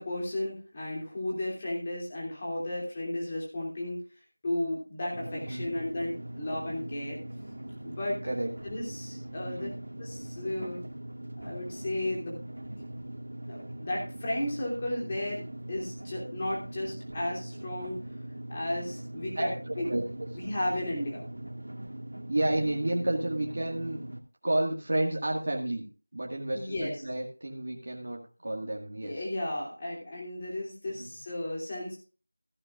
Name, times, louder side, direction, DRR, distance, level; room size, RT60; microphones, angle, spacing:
voice 1, 0.0-4.0 4.4-7.2 7.8-8.2 8.6-9.7 10.0-10.8 11.4-12.4 13.5-18.0 18.5-19.9 20.4-21.3 26.5-26.9 29.0-32.0, left 1 dB, 20° left, -3 dB, 3.0 m, -34 dB
sound 1, 5.1-24.2, right 1 dB, 75° right, 2.0 m, -41 dB
voice 2, 5.3-5.7 8.2-8.5 9.4-9.8 19.4-19.5 19.9-20.0 22.3-24.0 24.4-25.9 26.1-29.3 31.0-31.1, right 1 dB, 40° right, -1 dB, 1.9 m, -31 dB
15.0 x 11.0 x 2.5 m, 0.35 s
figure-of-eight pair, 175°, 0 cm